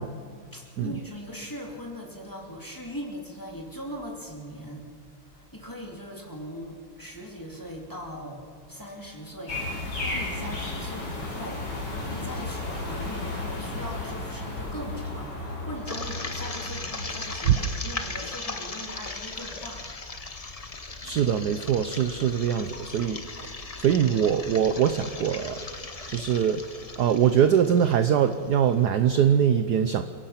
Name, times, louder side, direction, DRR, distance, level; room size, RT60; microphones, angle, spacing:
voice 1, 0.0-4.9 5.2-19.9, equal, 10° left, -1 dB, 2.6 m, -40 dB
sound 1, 9.5-17.7, left 2 dB, 50° left, 5.7 m, -34 dB
sound 2, 15.9-28.7, left 3 dB, 30° left, 0.6 m, -38 dB
voice 2, 21.0-23.5 23.8-25.6 26.1-26.6 27.0-30.0, right 8 dB, 65° right, 9 dB, 1.1 m, -23 dB
28.5 x 16.5 x 5.8 m, 2.1 s
omnidirectional pair, 2.4 m